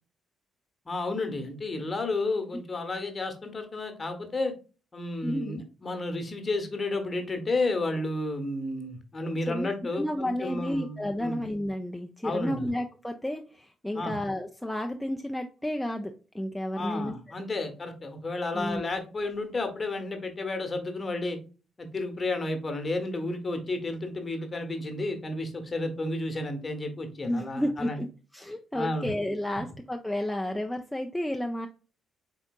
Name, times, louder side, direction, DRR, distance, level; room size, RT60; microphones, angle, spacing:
voice 1, 0.8-4.5 4.9-11.4 12.2-12.7 13.9-14.2 16.8-21.4 21.8-28.0 28.7-29.1, left 2 dB, 30° left, 5 dB, 1.0 m, -32 dB
voice 2, 5.2-5.6 9.5-17.1 18.5-18.8 27.3-28.1 28.3-31.7, left 1 dB, 5° left, 3 dB, 0.4 m, -31 dB
4.3 x 3.7 x 2.3 m, 0.36 s
figure-of-eight pair, 40°, 0 cm